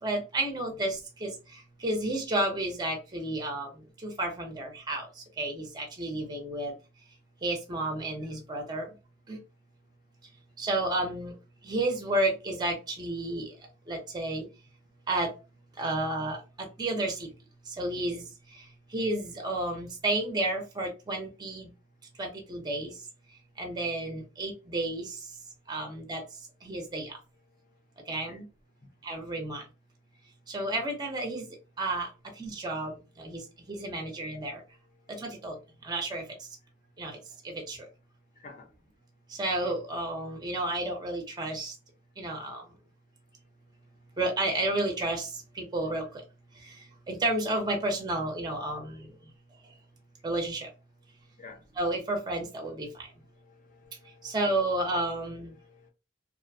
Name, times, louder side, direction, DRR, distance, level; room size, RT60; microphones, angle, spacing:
voice 1, 0.0-3.7 4.0-6.7 7.4-8.9 9.3-9.4 10.6-11.3 11.6-13.5 13.9-14.5 15.1-15.3 15.8-17.3 17.7-18.3 18.5-18.6 18.9-21.7 22.2-22.9 23.6-25.2 25.7-26.2 26.6-27.2 28.1-28.4 29.0-29.6 30.5-32.1 32.4-32.9 33.2-34.6 35.1-35.5 35.8-36.2 37.0-37.2 37.4-37.8 39.3-41.7 42.2-42.6 44.2-46.1 46.6-46.7 47.1-49.1 50.2-50.7 51.8-53.1 54.2-55.5, right 2 dB, 20° right, 0.6 m, -31 dB
voice 2, 53.4-54.3 55.7-55.9, left 4 dB, 40° left, 0.6 m, -51 dB
2.6 x 2.2 x 2.6 m
head